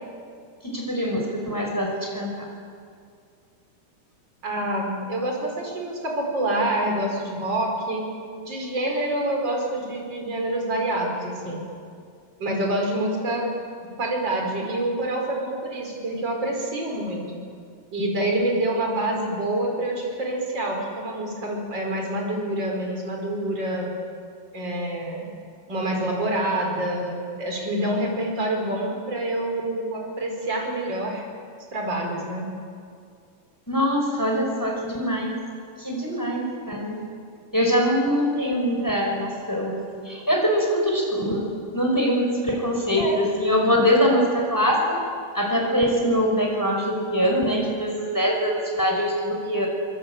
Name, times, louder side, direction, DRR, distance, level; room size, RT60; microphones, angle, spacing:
voice 1, 0.6-2.5 33.7-35.4 35.8-37.0 37.5-39.8 40.0-41.4 41.7-45.0 45.3-49.7, equal, 5° left, 0 dB, 4.8 m, -23 dB
voice 2, 4.4-8.1 8.4-11.6 12.4-13.5 13.8-17.4 17.9-23.9 24.5-25.3 25.7-31.3 31.7-32.5 43.0-43.2, right 1 dB, 25° right, 1 dB, 5.1 m, -27 dB
25.0 x 21.0 x 9.1 m, 2.3 s
omnidirectional pair, 4.6 m